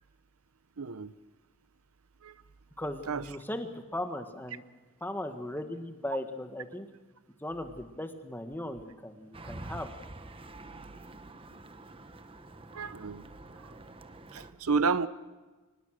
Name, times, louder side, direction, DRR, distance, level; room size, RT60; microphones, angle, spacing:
voice 1, 0.8-1.1 2.2-2.4 3.1-3.2 12.7-13.3 13.5-13.7 14.3-15.1, right 4 dB, 70° right, 15 dB, 0.8 m, -31 dB
voice 2, 2.8-4.6 5.0-6.9 7.4-9.9, left 1 dB, 10° left, 7 dB, 1.6 m, -37 dB
sound 1, 9.3-14.5, right 2 dB, 25° right, 1.0 m, -47 dB
24.0 x 20.0 x 6.5 m, 1.3 s
head